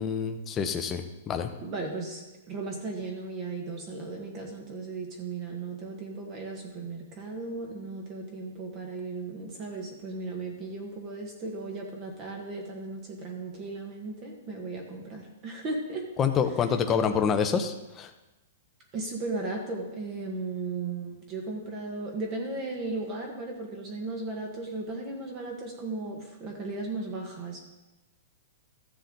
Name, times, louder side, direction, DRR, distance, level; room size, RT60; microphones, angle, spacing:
voice 1, 0.0-1.5 16.2-18.1, left 7 dB, 20° left, 7 dB, 0.7 m, -27 dB
voice 2, 1.6-2.2 2.5-16.0 18.9-27.6, right 3 dB, 30° right, 1 dB, 1.5 m, -36 dB
14.0 x 6.6 x 3.9 m, 1.0 s
hypercardioid pair, 160°, 0 cm